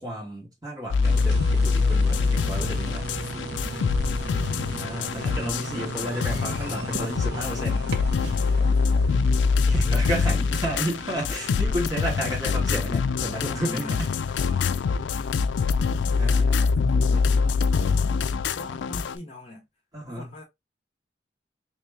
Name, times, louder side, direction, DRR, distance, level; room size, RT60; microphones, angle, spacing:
voice 1, 0.0-3.1 4.8-7.9 9.7-14.0 16.2-16.7 19.9-20.3, right 1 dB, 20° right, 1.8 m, -32 dB
sound 1, 0.9-19.2, left 5 dB, 80° left, 0.3 m, -24 dB
sound 2, 1.0-15.0, right 3 dB, 65° right, 0.6 m, -37 dB
voice 2, 2.1-4.0 5.2-5.6 8.4-9.1 9.8-10.3 13.4-15.4 15.9-19.7 20.1-20.4, left 1 dB, 35° left, 1.0 m, -44 dB
3.1 x 3.0 x 3.4 m
head